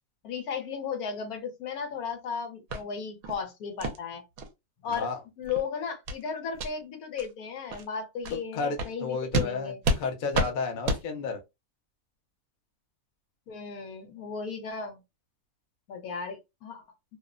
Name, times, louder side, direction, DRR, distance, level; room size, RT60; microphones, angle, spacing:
voice 1, 0.2-4.2 4.8-5.1 5.4-9.8 13.5-15.0 15.9-16.8, left 6 dB, 75° left, 1.2 m, -35 dB
sound 1, 2.7-2.8 3.2-3.4 3.8-4.0 4.4-4.5 4.9-5.0 5.4-5.6 6.1-6.2 6.5-6.7 7.2-7.3 7.7-7.8 8.2-8.4 8.8-8.9 9.3-9.5 9.8-10.0 10.3-10.5 10.9-11.0, right 2 dB, 70° right, 1.0 m, -29 dB
voice 2, 4.8-5.2 8.5-11.4, left 4 dB, 90° left, 0.4 m, -32 dB
2.8 x 2.0 x 2.4 m
omnidirectional pair, 1.6 m